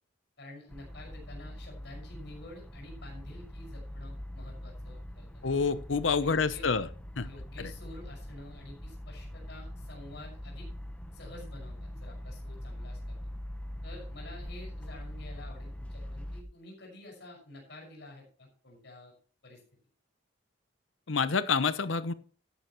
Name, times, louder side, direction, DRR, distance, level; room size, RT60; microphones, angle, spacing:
voice 1, 0.4-5.6 6.2-6.8 7.2-10.7 11.1-13.2 13.8-19.1 19.4-19.6, left 1 dB, 60° left, 0 dB, 5.9 m, -49 dB
sound 1, 0.7-16.4, left 1 dB, 5° left, 1.0 m, -43 dB
voice 2, 5.4-6.9 7.2-7.3 21.1-22.1, left 5 dB, 80° left, 14 dB, 0.8 m, -27 dB
13.5 x 10.5 x 3.1 m, 0.42 s
head